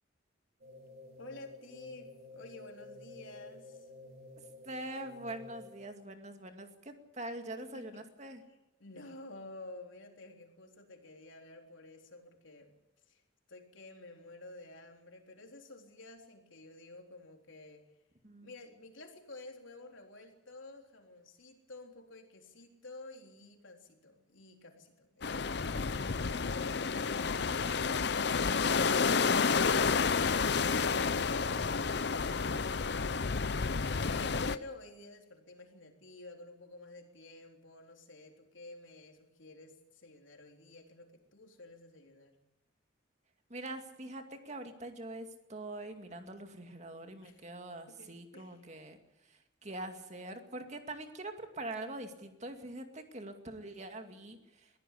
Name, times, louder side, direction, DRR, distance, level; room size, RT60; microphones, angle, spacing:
sound 1, 0.6-6.0, left 2 dB, 50° right, 5.1 m, -52 dB
voice 1, 1.2-3.9 7.6-8.0 8.8-12.7 13.1-13.2 13.5-17.8 18.4-42.4 47.2-47.5 47.9-48.6, left 2 dB, 85° left, 3 dB, 3.7 m, -51 dB
voice 2, 4.6-8.4 18.2-18.5 43.5-49.0 49.3-54.7, right 1 dB, 35° right, 6 dB, 2.3 m, -44 dB
sound 2, 25.2-34.6, left 5 dB, 60° left, 0.7 m, -30 dB
22.0 x 15.5 x 8.6 m, 0.94 s
head